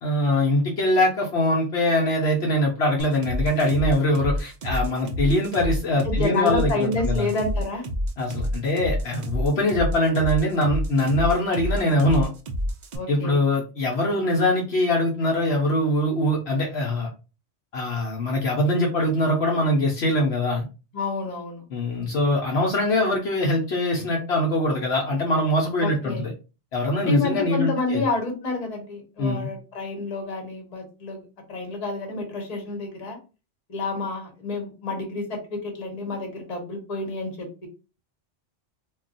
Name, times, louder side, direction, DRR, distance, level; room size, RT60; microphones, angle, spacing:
voice 1, 0.0-7.3 8.2-12.3 13.1-17.1 17.7-20.7 21.7-26.3 26.7-28.0 29.2-29.5, left 1 dB, 65° left, 0 dB, 0.9 m, -23 dB
sound 1, 3.0-13.0, equal, 55° right, 0.5 m, -28 dB
voice 2, 6.0-7.9 12.9-13.4 20.9-21.6 25.8-26.3 27.0-31.2 31.5-33.2 33.7-37.7, left 3 dB, 35° left, 2 dB, 0.9 m, -29 dB
2.3 x 2.3 x 3.8 m, 0.31 s
omnidirectional pair, 1.2 m